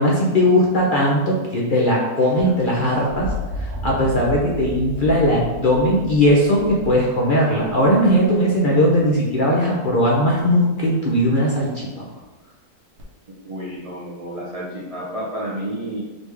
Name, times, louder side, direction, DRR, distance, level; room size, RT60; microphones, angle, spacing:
voice 1, 0.0-3.3 3.6-12.0, equal, 50° left, -3 dB, 0.6 m, -18 dB
sound 1, 2.4-8.3 9.9-10.4 13.0-13.1, left 1 dB, 80° right, 1.4 m, -33 dB
voice 2, 13.3-16.0, right 1 dB, 55° right, -5 dB, 0.3 m, -30 dB
4.0 x 3.2 x 3.4 m, 1.1 s
omnidirectional pair, 1.6 m